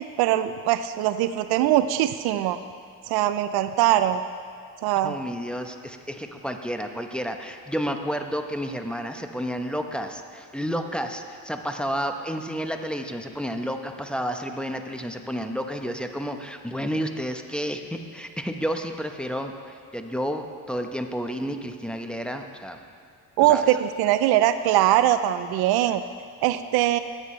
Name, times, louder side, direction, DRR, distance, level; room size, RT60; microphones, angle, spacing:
voice 1, 0.0-2.6 3.1-4.2 4.8-5.2 23.4-26.0 26.4-27.0, right 13 dB, 70° right, 12 dB, 0.5 m, -22 dB
voice 2, 5.0-22.8 23.4-23.6, equal, ahead, 4 dB, 0.9 m, -31 dB
17.5 x 7.7 x 3.2 m, 2.4 s
supercardioid pair, 65°, 39 cm